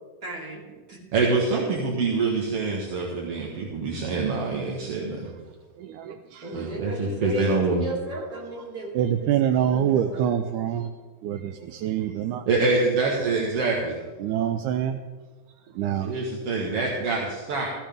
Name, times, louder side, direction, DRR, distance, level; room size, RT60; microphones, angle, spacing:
voice 1, 0.2-0.6 0.9-1.0 6.4-10.3, right 2 dB, 30° right, -6 dB, 4.7 m, -35 dB
voice 2, 1.1-5.3 6.5-7.8 12.5-14.0 16.0-17.7, right 3 dB, 55° right, -1 dB, 2.1 m, -25 dB
voice 3, 5.8-7.1 7.4-7.5 8.9-10.9 11.2-12.4 14.2-15.0 15.8-16.2, right 10 dB, 80° right, 8 dB, 1.9 m, -26 dB
16.0 x 14.5 x 3.5 m, 1.4 s
omnidirectional pair, 3.8 m